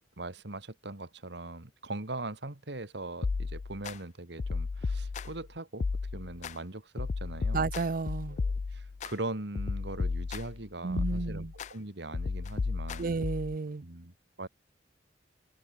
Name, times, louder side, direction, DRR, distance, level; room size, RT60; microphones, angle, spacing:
voice 1, 0.2-5.9 6.1-7.7 8.3-13.1 13.8-14.5, right 2 dB, 65° right, 2.1 m, -40 dB
sound 1, 3.2-4.0 4.4-5.5 5.8-6.5 7.0-9.1 9.6-10.6 11.0-11.7 12.1-13.6, left 4 dB, 40° left, 0.3 m, -33 dB
voice 2, 7.5-8.4 10.8-11.5 13.0-13.8, right 4 dB, 50° right, 0.5 m, -32 dB
head